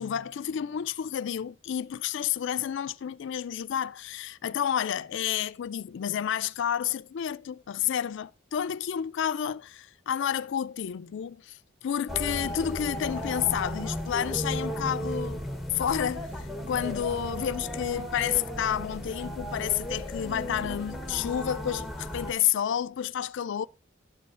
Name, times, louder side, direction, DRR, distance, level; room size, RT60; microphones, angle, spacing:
voice 1, 0.0-15.4 15.7-23.7, left 9 dB, 60° left, 0.3 m, -30 dB
sound 1, 12.1-22.3, equal, ahead, 0.9 m, -35 dB
12.0 x 7.7 x 2.4 m
head